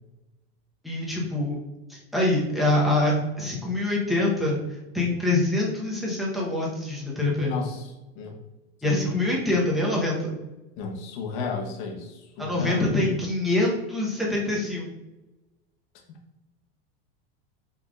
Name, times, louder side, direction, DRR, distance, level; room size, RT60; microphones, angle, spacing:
voice 1, 0.8-1.6 1.9-4.6 4.9-7.5 8.8-10.3 12.4-14.9, left 2 dB, ahead, -4 dB, 0.9 m, -25 dB
voice 2, 7.4-7.9 8.2-8.4 8.8-9.3 10.8-12.8, left 4 dB, 55° left, 2 dB, 0.9 m, -33 dB
5.5 x 3.4 x 2.4 m, 1.0 s
supercardioid pair, 155°, 30 cm